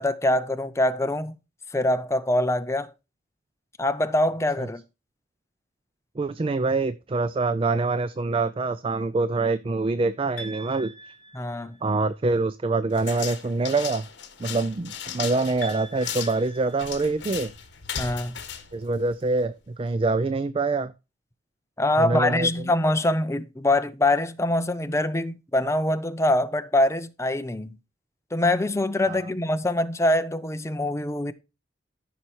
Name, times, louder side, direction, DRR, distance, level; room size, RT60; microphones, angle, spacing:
voice 1, 0.0-1.4 1.7-2.9 3.8-4.8 11.3-11.8 18.0-18.4 21.8-27.7 28.3-31.3, left 1 dB, 15° left, 0.6 m, -24 dB
voice 2, 6.2-10.9 11.8-14.1 14.4-17.5 18.7-20.9 22.0-22.5 29.0-29.2, right 3 dB, 30° right, 0.4 m, -25 dB
sound 1, 10.4-12.0 15.6-17.6, right 1 dB, 45° left, 2.9 m, -43 dB
sound 2, 13.0-19.5, left 8 dB, 65° left, 1.5 m, -36 dB
14.0 x 5.7 x 3.1 m
head